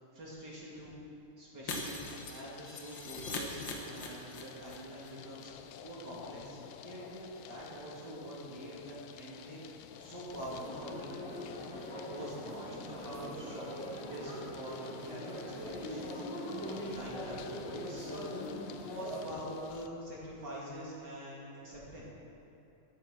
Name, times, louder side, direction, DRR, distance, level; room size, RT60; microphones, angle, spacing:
voice 1, 0.1-0.9 1.4-11.2 11.9-22.1, equal, 35° right, -6 dB, 2.7 m, -45 dB
Shatter, 1.7-4.8 5.0-5.1 5.4-5.5, left 2 dB, 55° left, 1.3 m, -41 dB
sound 1, 2.0-19.9, left 9 dB, 80° left, 2.1 m, -52 dB
sound 2, 10.3-19.2, equal, 35° left, 2.6 m, -42 dB
12.0 x 11.0 x 6.2 m, 3.0 s
omnidirectional pair, 3.9 m